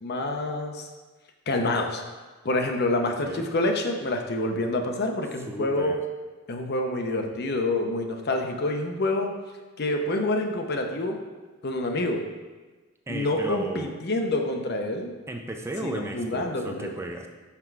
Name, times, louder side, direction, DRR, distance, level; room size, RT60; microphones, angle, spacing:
voice 1, 0.0-0.9 1.5-2.0 2.4-6.0 6.5-9.3 9.8-11.2 11.6-12.2 13.1-15.1 15.8-16.9, left 2 dB, 55° left, 4 dB, 0.7 m, -27 dB
voice 2, 3.0-3.5 5.5-6.0 13.1-13.9 15.3-17.3, right 1 dB, 15° right, 3 dB, 0.4 m, -35 dB
5.9 x 4.5 x 4.7 m, 1.3 s
head